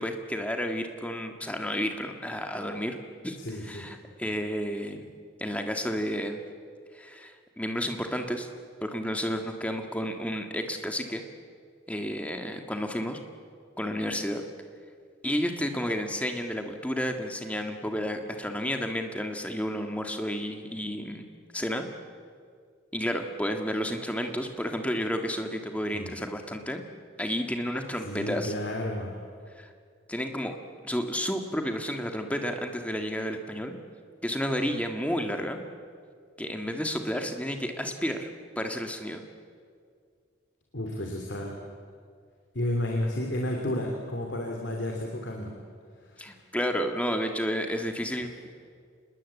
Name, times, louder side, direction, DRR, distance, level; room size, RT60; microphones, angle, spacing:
voice 1, 0.0-3.0 3.2-5.1 5.4-6.4 6.9-8.5 8.8-11.2 11.9-13.2 13.8-14.4 15.2-21.2 21.5-21.8 22.9-26.8 27.2-28.5 29.6-29.7 30.1-30.5 30.8-33.8 34.2-35.6 36.4-38.3 38.5-39.2 46.2-48.5, equal, 5° left, 5 dB, 1.7 m, -31 dB
voice 2, 3.4-3.9 25.9-26.1 28.1-29.2 40.7-41.6 42.5-45.5 46.0-46.4, left 1 dB, 60° left, 1 dB, 2.8 m, -32 dB
26.5 x 20.5 x 8.3 m, 2.1 s
head